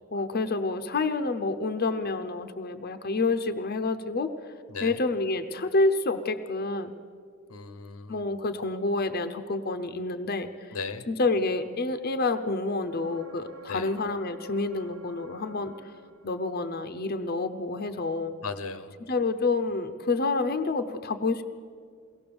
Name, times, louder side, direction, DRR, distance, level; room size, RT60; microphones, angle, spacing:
voice 1, 0.1-4.3 4.8-6.9 8.1-10.8 11.1-15.9 16.2-18.4 19.1-21.4, left 3 dB, 45° left, 9 dB, 0.7 m, -28 dB
voice 2, 7.5-8.2 10.7-11.1 13.7-13.9 18.4-18.9, left 4 dB, 90° left, 11 dB, 1.1 m, -36 dB
sound 1, 12.8-16.6 20.3-20.4, right 2 dB, 80° right, 1.3 m, -48 dB
22.5 x 18.0 x 7.0 m, 2.2 s
head